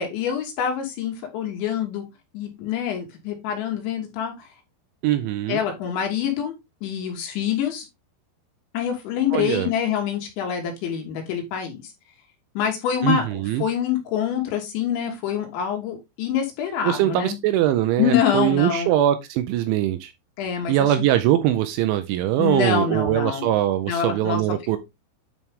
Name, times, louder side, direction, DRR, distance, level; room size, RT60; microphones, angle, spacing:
voice 1, 0.0-2.0 2.3-4.5 5.5-6.5 6.8-7.9 8.7-11.9 12.6-17.4 18.0-18.9 20.4-21.0 22.4-23.5 23.9-24.4, left 8 dB, 70° left, 3.8 m, -26 dB
voice 2, 5.0-5.6 9.3-9.7 13.0-13.6 16.8-20.1 20.7-24.8, right 12 dB, 80° right, 2.8 m, -22 dB
9.8 x 4.5 x 3.6 m
omnidirectional pair, 5.8 m